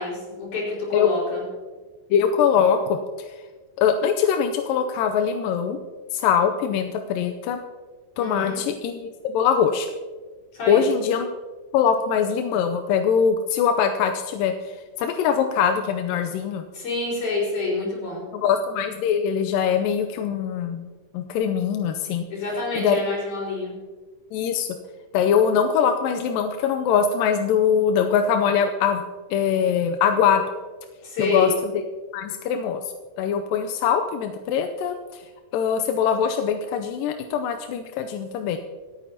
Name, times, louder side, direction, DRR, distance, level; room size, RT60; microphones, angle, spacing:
voice 1, 0.0-1.4 8.2-8.6 10.5-10.8 16.7-18.5 22.3-23.8 31.0-31.6, left 3 dB, 60° left, -4 dB, 6.2 m, -27 dB
voice 2, 2.1-3.0 3.8-5.8 6.1-7.6 8.2-9.9 10.7-11.3 11.7-16.6 18.3-20.9 21.1-22.3 22.8-23.0 24.3-24.7 25.1-29.0 29.3-30.4 31.2-31.8 32.1-32.8 33.2-35.0 35.5-38.6, left 7 dB, 90° left, 6 dB, 2.3 m, -22 dB
26.5 x 9.2 x 2.9 m, 1.4 s
omnidirectional pair, 4.0 m